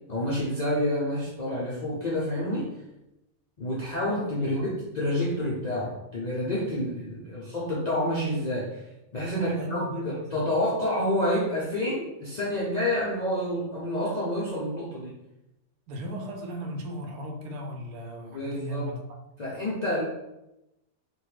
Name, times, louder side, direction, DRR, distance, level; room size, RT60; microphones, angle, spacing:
voice 1, 0.1-2.7 3.6-4.7 5.0-8.8 9.1-15.2 18.3-18.9 19.4-20.0, left 1 dB, 75° left, -7 dB, 0.4 m, -28 dB
voice 2, 4.4-4.7 9.4-10.4 15.9-19.2, right 1 dB, 85° right, 3 dB, 1.1 m, -36 dB
3.0 x 2.2 x 3.1 m, 0.92 s
omnidirectional pair, 1.5 m